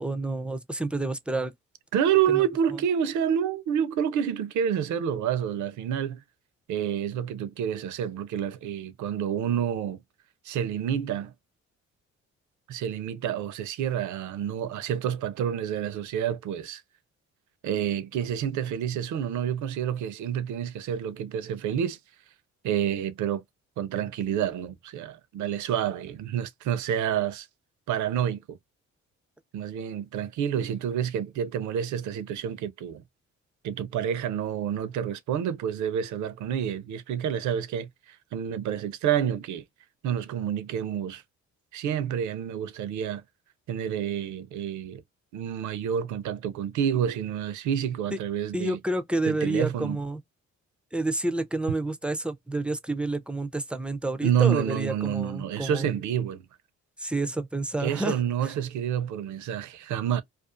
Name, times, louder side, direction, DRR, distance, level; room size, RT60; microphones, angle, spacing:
voice 1, 0.0-1.5 2.3-2.4 2.7-2.8 48.5-50.2 50.9-55.9 57.0-58.5, right 2 dB, 5° right, 0.4 m, -29 dB
voice 2, 1.9-6.2 6.7-10.0 10.4-11.3 12.7-16.8 17.6-22.0 22.6-23.4 23.8-27.5 27.9-28.6 29.5-33.0 33.6-39.6 40.0-41.2 41.7-43.2 43.7-45.0 45.3-48.8 49.3-50.0 54.2-56.5 57.8-60.2, right 9 dB, 75° right, 0.5 m, -28 dB
2.4 x 2.4 x 2.4 m
cardioid pair, 90°, 30 cm